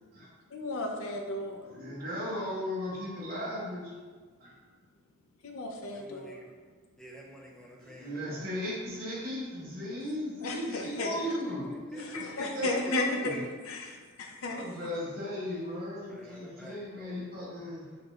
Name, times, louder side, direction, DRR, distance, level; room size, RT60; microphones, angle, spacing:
voice 1, 0.5-1.6 5.4-6.4 10.4-11.3 12.0-13.4 13.6-14.8, left 2 dB, 80° left, 3 dB, 0.5 m, -34 dB
voice 2, 1.6-4.0 4.4-4.5 7.8-11.7 11.9-13.4 14.5-18.0, equal, 45° right, -6 dB, 1.1 m, -37 dB
voice 3, 5.9-8.4 11.2-12.9 16.1-17.3, equal, 5° left, -2 dB, 0.4 m, -46 dB
4.6 x 2.4 x 3.1 m, 1.5 s
head